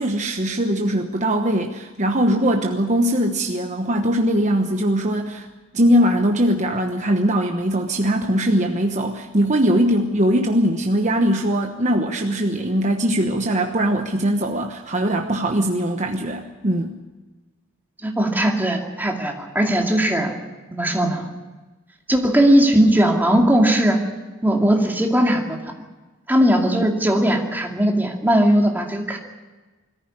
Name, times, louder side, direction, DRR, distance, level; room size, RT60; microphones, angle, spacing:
voice 1, 0.0-5.5 5.7-17.0, equal, 35° right, 3 dB, 1.1 m, -21 dB
voice 2, 18.0-20.4 20.7-21.3 22.1-24.0 24.4-25.6 26.3-29.2, right 1 dB, 10° right, 1 dB, 2.3 m, -18 dB
21.5 x 14.5 x 9.8 m, 1.2 s
head